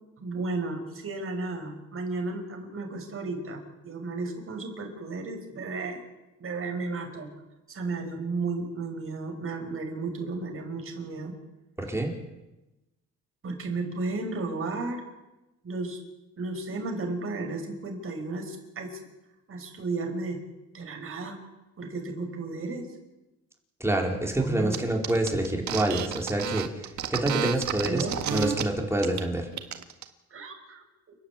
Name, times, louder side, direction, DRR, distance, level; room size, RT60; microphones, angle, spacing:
voice 1, 0.2-6.0 6.4-7.3 7.7-11.4 13.4-15.0 15.6-16.0 16.4-19.0 19.5-20.4 20.7-21.4 21.8-22.9 24.4-24.8 27.8-28.2 30.3-30.8, right 3 dB, 45° right, 3 dB, 5.7 m, -33 dB
voice 2, 11.8-12.1 23.8-26.7 27.1-29.5, right 1 dB, 10° right, 1 dB, 4.6 m, -27 dB
sound 1, 24.7-24.8 25.0-28.6 29.0-29.2 29.5-30.0, right 9 dB, 70° right, 1.8 m, -31 dB
29.5 x 10.5 x 8.7 m, 1.0 s
cardioid pair, 90°, 30 cm